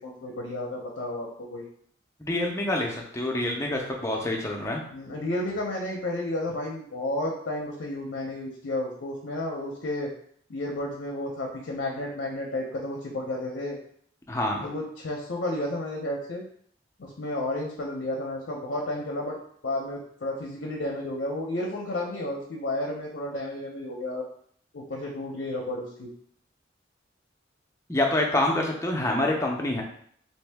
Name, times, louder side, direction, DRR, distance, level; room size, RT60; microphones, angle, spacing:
voice 1, 0.0-1.6 4.9-10.1 10.5-13.8 14.6-16.4 17.0-19.4 19.6-24.2 24.7-26.1, left 1 dB, 65° left, -1 dB, 0.5 m, -32 dB
voice 2, 2.2-4.8 14.3-14.7 27.9-29.8, left 1 dB, 15° left, 0 dB, 0.5 m, -26 dB
2.9 x 2.7 x 3.3 m, 0.63 s
head